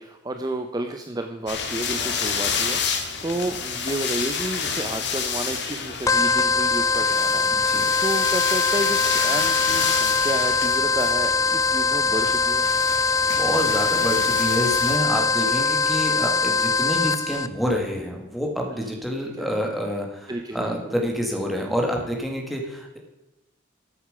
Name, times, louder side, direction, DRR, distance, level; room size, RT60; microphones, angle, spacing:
voice 1, 0.0-7.5 8.0-12.7 18.7-19.0 19.4-19.5 20.3-20.9, right 1 dB, 20° right, 6 dB, 0.7 m, -31 dB
sound 1, 1.5-15.0, left 6 dB, 65° left, 1.8 m, -30 dB
sound 2, 6.1-17.5, left 4 dB, 15° left, 0.3 m, -22 dB
voice 2, 7.5-7.8 12.9-23.0, equal, ahead, 0 dB, 2.2 m, -28 dB
14.0 x 7.9 x 5.0 m, 1.0 s
head